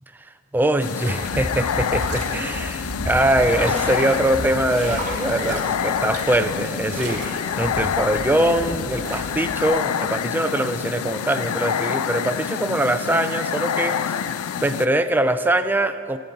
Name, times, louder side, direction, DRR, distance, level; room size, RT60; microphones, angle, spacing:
voice 1, 0.5-14.3 14.6-16.2, right 1 dB, 10° right, 9 dB, 0.3 m, -22 dB
sound 1, 0.8-14.9, left 8 dB, 90° left, 0.4 m, -27 dB
sound 2, 1.0-9.6, right 1 dB, 35° right, 1.5 m, -33 dB
16.5 x 8.4 x 3.9 m, 2.4 s
head